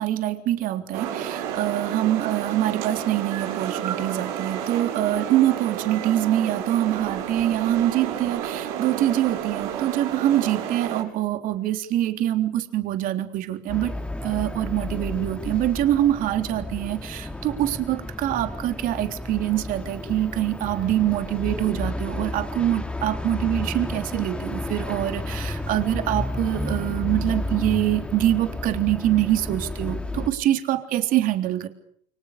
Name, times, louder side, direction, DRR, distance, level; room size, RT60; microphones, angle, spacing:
voice 1, 0.0-14.0 14.2-31.7, right 13 dB, 55° right, 8 dB, 3.6 m, -24 dB
sound 1, 0.9-11.0, right 9 dB, 75° right, 8.0 m, -31 dB
sound 2, 13.7-30.3, left 1 dB, 5° left, 2.9 m, -32 dB
29.0 x 25.0 x 6.8 m, 0.64 s
supercardioid pair, 125°, 17 cm